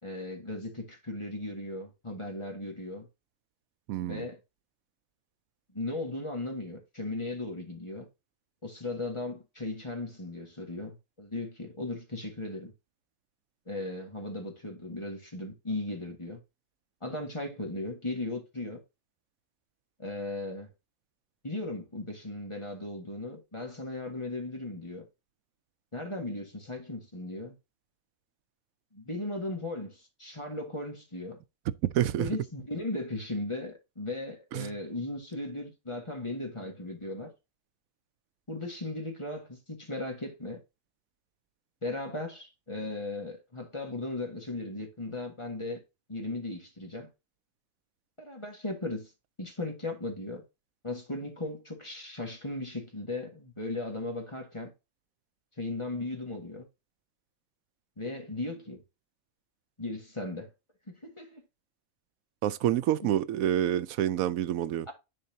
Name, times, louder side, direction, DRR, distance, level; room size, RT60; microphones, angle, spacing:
voice 1, 0.0-3.1 4.0-4.4 5.7-8.1 8.6-12.7 13.7-16.4 17.0-18.8 20.0-20.7 21.4-25.0 25.9-27.6 28.9-31.4 32.2-37.3 38.5-40.6 41.8-45.8 46.1-47.1 48.2-49.1 49.4-50.4 50.8-54.7 55.6-56.7 58.0-58.8 59.8-60.5 60.9-61.4 63.0-63.1, left 2 dB, 20° left, 1.6 m, -37 dB
voice 2, 3.9-4.2 31.8-32.3 34.5-34.7 62.4-64.9, right 11 dB, 85° right, 1.0 m, -28 dB
10.5 x 4.2 x 2.7 m
omnidirectional pair, 1.4 m